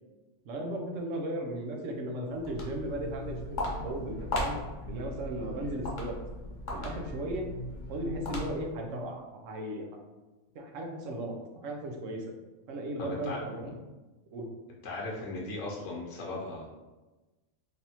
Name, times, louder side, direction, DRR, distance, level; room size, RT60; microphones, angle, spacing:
voice 1, 0.4-4.6 4.9-6.2 6.7-7.5 7.9-9.8 10.5-12.2 12.7-13.6 14.3-14.5, right 1 dB, 90° right, 1 dB, 1.0 m, -36 dB
Walk footsteps, 2.3-8.8, left 1 dB, 45° left, 0.7 m, -37 dB
voice 2, 13.0-13.4 14.8-16.7, left 2 dB, 75° left, -3 dB, 1.0 m, -37 dB
3.4 x 2.5 x 2.8 m, 1.2 s
omnidirectional pair, 1.3 m